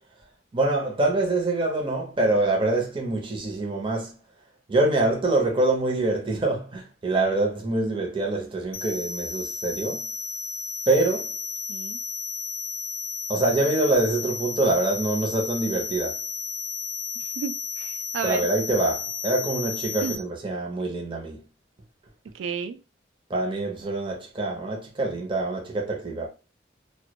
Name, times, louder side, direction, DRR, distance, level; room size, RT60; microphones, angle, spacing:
voice 1, 0.5-4.1 4.7-10.0 10.9-11.3 13.3-16.2 18.2-21.4 23.3-26.3, right 2 dB, 25° right, 0.5 m, -25 dB
sound 1, 8.7-20.2, left 4 dB, 50° left, 0.4 m, -33 dB
voice 2, 17.4-18.5 20.0-20.2 22.3-22.8, right 6 dB, 85° right, 0.3 m, -32 dB
2.1 x 2.1 x 2.8 m
head